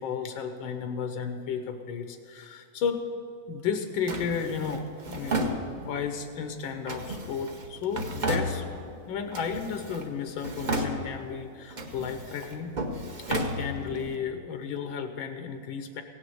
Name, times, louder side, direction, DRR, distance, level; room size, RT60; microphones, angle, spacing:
voice 1, 0.0-3.0 3.5-8.6 9.1-12.8 13.3-16.0, left 6 dB, 85° left, 6 dB, 1.6 m, -33 dB
Drawer open or close, 4.1-6.1 6.9-9.0 9.3-10.1 10.4-11.3 11.7-14.1, right 1 dB, 40° right, 0.7 m, -33 dB
17.0 x 6.4 x 7.8 m, 2.4 s
omnidirectional pair, 2.1 m